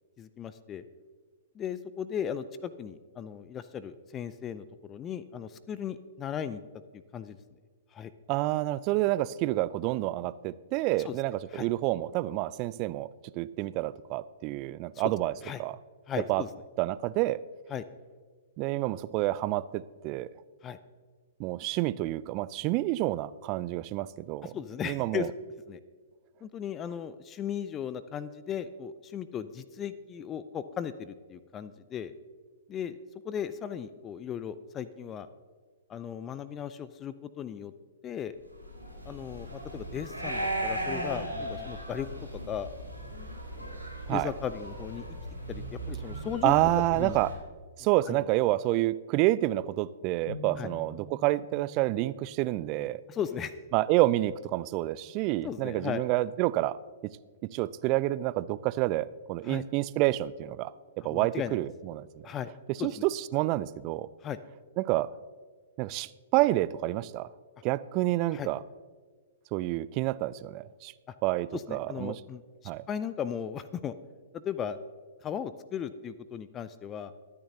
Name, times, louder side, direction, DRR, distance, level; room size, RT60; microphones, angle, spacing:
voice 1, 0.2-0.8 1.5-6.6 7.1-7.4 7.9-8.1 11.0-11.2 11.5-11.7 14.9-15.0 15.4-15.6 16.1-16.5 17.7-17.8 20.6-20.8 24.4-25.3 25.7-25.8 26.4-32.1 32.7-33.0 33.2-35.3 35.9-37.7 38.0-38.4 39.1-42.1 42.3-42.7 43.6-45.0 45.5-46.5 47.0-47.2 47.8-48.2 50.6-50.7 53.1-53.6 55.4-56.0 59.4-59.6 61.1-61.6 62.2-62.5 62.8-63.0 64.2-64.4 68.3-68.5 71.1-71.2 71.5-72.4 72.9-73.9 74.3-74.8 75.2-77.1, left 8 dB, 20° left, 14 dB, 0.5 m, -36 dB
voice 2, 8.3-13.1 13.3-15.3 15.6-15.8 16.3-16.4 16.8-17.4 18.6-20.3 21.4-24.5 24.8-25.3 44.1-44.3 46.4-47.4 47.8-53.0 53.7-56.8 57.0-57.2 57.4-60.7 61.0-62.2 62.7-64.1 64.8-65.1 65.8-67.3 67.6-68.6 69.5-70.9 71.2-72.2 72.6-72.8, right 17 dB, 35° right, 18 dB, 0.4 m, -28 dB
sound 1, 38.5-47.3, right 1 dB, 90° left, 3.9 m, -37 dB
sound 2, 50.3-56.5, left 3 dB, 45° left, 1.6 m, -49 dB
23.5 x 9.6 x 2.8 m, 1.5 s
figure-of-eight pair, 110°, 0 cm